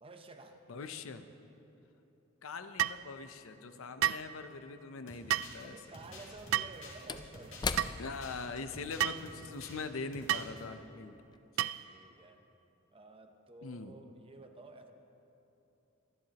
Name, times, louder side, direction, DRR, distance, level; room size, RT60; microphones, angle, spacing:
voice 1, 0.0-0.6 5.6-7.8 8.5-8.7 10.7-10.9 11.9-12.5 12.9-14.9, right 2 dB, 25° right, 6 dB, 0.7 m, -52 dB
voice 2, 0.7-1.3 2.4-5.7 8.0-11.2 13.6-13.9, left 4 dB, 80° left, 10 dB, 0.6 m, -42 dB
sound 1, 2.8-3.0 4.0-4.3 5.3-5.5 6.5-6.8 7.8-7.9 9.0-9.2 10.3-10.5 11.6-11.9, right 12 dB, 85° right, 0.3 m, -31 dB
Slam / Wood, 4.6-4.7 6.2-10.9 11.2-11.4, left 5 dB, 20° left, 0.3 m, -42 dB
sound 2, 5.1-9.8 10.1-10.6, left 2 dB, 65° left, 2.5 m, -50 dB
24.0 x 10.5 x 2.9 m, 3.0 s
head